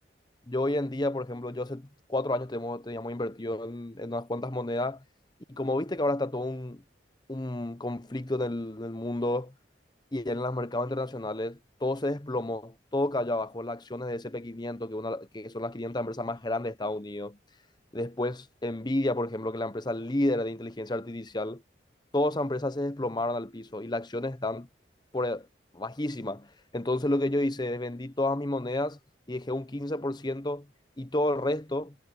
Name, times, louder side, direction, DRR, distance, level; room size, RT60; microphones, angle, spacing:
voice 1, 0.5-5.0 5.5-6.8 7.3-9.5 10.1-17.4 17.9-21.6 22.1-24.7 25.1-25.5 25.7-29.0 29.3-30.6 31.0-31.9, left 1 dB, 25° left, 1.0 m, -31 dB
head